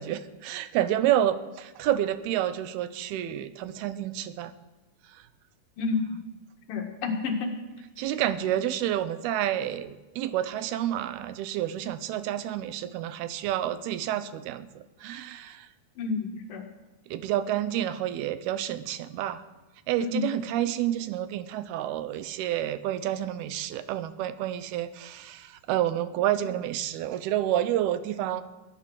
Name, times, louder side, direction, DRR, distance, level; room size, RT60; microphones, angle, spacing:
voice 1, 0.0-4.5 5.1-5.2 8.0-15.7 17.1-19.4 19.9-28.4, right 12 dB, 85° right, 13 dB, 2.8 m, -29 dB
voice 2, 5.8-6.2 6.7-7.5 16.0-16.6 20.0-20.3, left 4 dB, 65° left, 3 dB, 3.2 m, -30 dB
21.0 x 10.0 x 6.4 m, 1.1 s
omnidirectional pair, 4.4 m